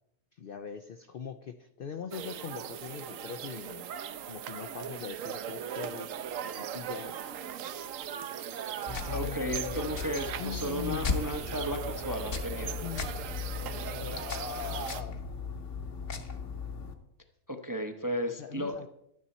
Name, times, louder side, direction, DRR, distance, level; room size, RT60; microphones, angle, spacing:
voice 1, 0.3-3.9 4.3-6.1 6.5-7.1 8.9-9.9 10.4-11.1 12.8-13.2 13.6-15.2 18.4-18.9, left 7 dB, 80° left, 8 dB, 0.5 m, -41 dB
sound 1, 2.1-15.0, right 9 dB, 65° right, 1.0 m, -39 dB
sound 2, 8.9-16.9, left 5 dB, 55° left, 1.3 m, -37 dB
voice 2, 9.1-12.8 17.5-18.9, equal, 25° right, 5 dB, 0.5 m, -34 dB
12.0 x 9.7 x 4.2 m, 0.79 s
omnidirectional pair, 1.6 m